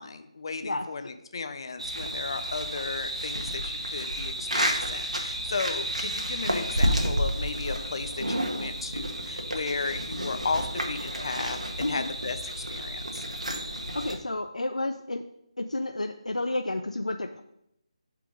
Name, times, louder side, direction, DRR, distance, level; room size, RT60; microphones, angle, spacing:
voice 1, 0.0-13.2, left 4 dB, 45° left, 8 dB, 0.8 m, -35 dB
sound 1, 1.8-14.2, equal, 80° right, 1.6 m, -31 dB
voice 2, 11.8-12.1 13.9-15.2 15.6-17.4, left 2 dB, 80° left, 6 dB, 0.5 m, -31 dB
11.0 x 4.7 x 3.8 m, 0.79 s
figure-of-eight pair, 155°, 4 cm